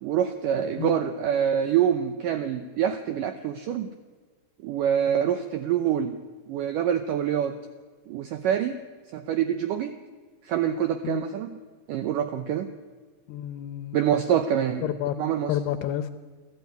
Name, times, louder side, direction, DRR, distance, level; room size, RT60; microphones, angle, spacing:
voice 1, 0.0-3.9 4.6-6.2 6.5-7.5 8.1-8.8 9.1-10.0 10.4-11.6 11.9-12.7 13.9-14.9 15.2-15.6, right 9 dB, 80° right, 9 dB, 1.9 m, -26 dB
voice 2, 13.3-14.0 14.8-15.2 15.5-16.1, left 11 dB, 80° left, 11 dB, 2.7 m, -29 dB
28.5 x 12.0 x 9.4 m, 1.5 s
omnidirectional pair, 4.9 m